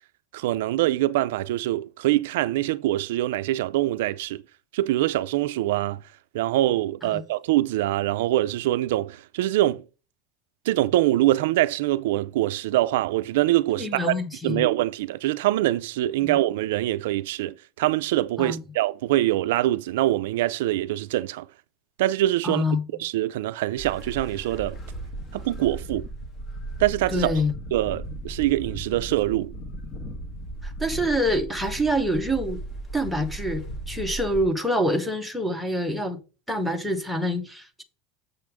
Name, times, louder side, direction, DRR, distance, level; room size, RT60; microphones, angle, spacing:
voice 1, 0.3-4.4 4.7-6.0 6.3-9.8 10.7-14.1 14.4-21.5 22.0-22.6 23.0-24.8 25.3-26.1 26.8-27.3 27.7-29.5, right 15 dB, 75° right, 0.4 m, -24 dB
voice 2, 13.7-14.6 16.2-16.3 18.4-18.6 22.4-22.8 27.1-27.5 30.6-32.6 32.9-36.2 36.5-37.8, equal, ahead, 0.9 m, -26 dB
sound 1, 23.8-34.4, right 1 dB, 20° left, 1.3 m, -36 dB
7.6 x 6.8 x 3.5 m
supercardioid pair, 175°, 0 cm